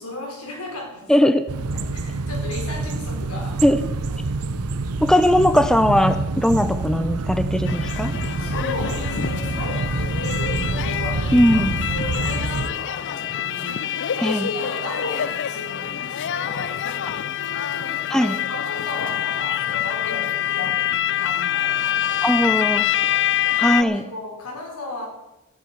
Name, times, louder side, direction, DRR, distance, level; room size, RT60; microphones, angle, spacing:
voice 1, 0.0-1.3 1.7-3.6 8.4-23.2 23.7-25.1, left 2 dB, 80° left, 1 dB, 4.3 m, -35 dB
voice 2, 1.1-1.5 3.6-3.8 5.0-8.1 11.3-11.8 14.2-14.5 18.1-18.4 22.2-22.8 23.6-24.0, equal, 5° left, 10 dB, 0.6 m, -19 dB
sound 1, 1.5-12.7, right 3 dB, 85° right, 0.8 m, -27 dB
sound 2, 7.7-23.8, left 11 dB, 55° left, 0.5 m, -26 dB
13.5 x 8.0 x 9.5 m, 0.96 s
head